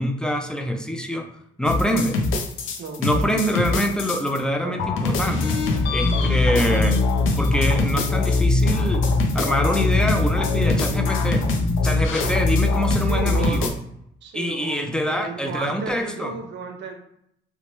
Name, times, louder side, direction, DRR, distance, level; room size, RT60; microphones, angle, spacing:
voice 1, 0.0-1.3 1.6-2.2 3.0-5.5 5.9-7.0 7.4-9.0 9.3-11.5 11.8-13.7 14.3-16.3, equal, 5° left, 5 dB, 0.4 m, -25 dB
sound 1, 1.7-4.4 4.8-13.7, left 3 dB, 85° left, 0.5 m, -22 dB
voice 2, 2.8-3.5 4.6-4.8 6.5-6.7 13.0-13.7 14.2-16.9, right 4 dB, 65° right, 5 dB, 0.6 m, -34 dB
2.8 x 2.1 x 3.0 m, 0.75 s
cardioid pair, 90°, 20 cm